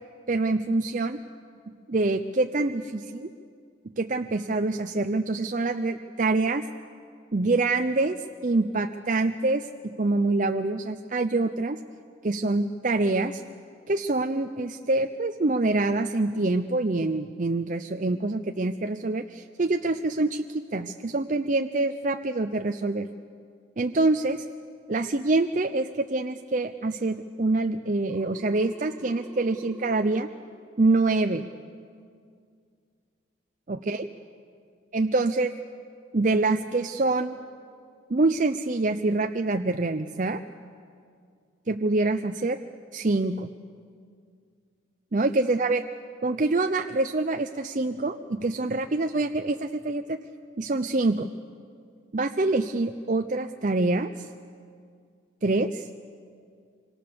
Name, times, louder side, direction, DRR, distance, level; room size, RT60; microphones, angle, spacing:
voice 1, 0.3-1.2 1.9-3.3 4.0-6.6 7.3-11.8 12.2-13.4 13.9-23.1 23.8-24.4 24.9-30.3 30.8-31.4 33.7-34.1 34.9-35.5 36.1-37.4 38.1-40.4 41.7-42.6 42.9-43.5 45.1-45.8 46.2-50.2 50.6-51.3 52.1-54.1 55.4-55.9, right 2 dB, 40° right, 7 dB, 0.6 m, -25 dB
Telephone, 28.1-30.1, equal, 20° right, 2.2 m, -46 dB
25.5 x 25.0 x 6.8 m, 2.2 s
head